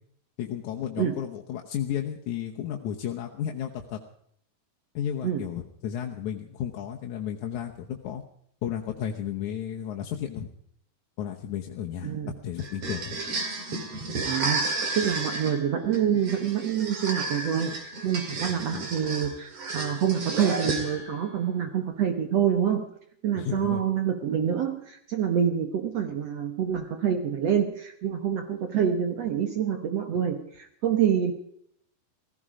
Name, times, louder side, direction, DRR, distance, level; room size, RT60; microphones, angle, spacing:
voice 1, 0.4-4.0 4.9-8.2 8.6-10.5 11.2-13.2 18.7-18.9 23.4-23.8, left 9 dB, 65° left, 2 dB, 2.0 m, -33 dB
sound 1, 12.6-21.2, right 3 dB, 45° right, 3.1 m, -32 dB
voice 2, 14.2-22.8 23.2-31.3, right 8 dB, 65° right, 7 dB, 1.7 m, -27 dB
16.5 x 15.5 x 5.0 m, 0.68 s
omnidirectional pair, 4.4 m